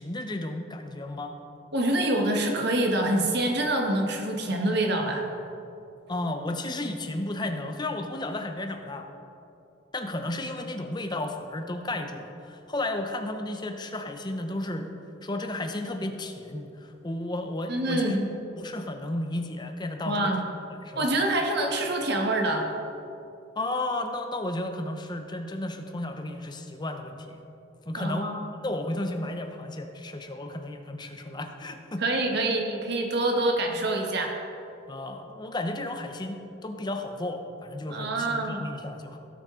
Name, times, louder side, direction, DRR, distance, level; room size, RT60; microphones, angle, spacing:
voice 1, 0.0-1.4 6.1-9.1 9.9-14.9 15.2-18.3 18.6-20.3 20.8-21.1 23.6-27.4 27.9-28.3 28.6-32.0 34.9-39.2, left 1 dB, 20° left, 5 dB, 0.7 m, -33 dB
voice 2, 1.7-5.3 17.7-18.3 20.1-20.5 20.9-22.7 28.0-28.4 32.0-34.4 37.9-38.7, right 1 dB, 55° right, 2 dB, 1.3 m, -26 dB
17.0 x 6.5 x 3.7 m, 2.8 s
head